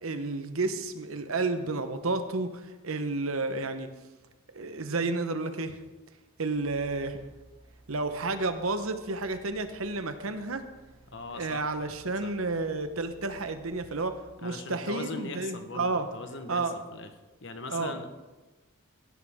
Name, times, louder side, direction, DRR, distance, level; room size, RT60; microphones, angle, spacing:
voice 1, 0.0-3.9 4.5-5.8 6.4-7.2 7.9-10.6 11.3-14.1 14.4-16.1 16.5-16.8 17.7-17.9, right 3 dB, 80° right, 9 dB, 1.1 m, -31 dB
sound 1, 6.5-14.2, right 1 dB, 30° right, 3.7 m, -57 dB
voice 2, 11.1-11.6 12.2-12.3 14.4-16.6 16.9-17.1 17.4-18.1, left 3 dB, 60° left, 7 dB, 1.3 m, -40 dB
16.0 x 11.5 x 3.7 m, 1.2 s
head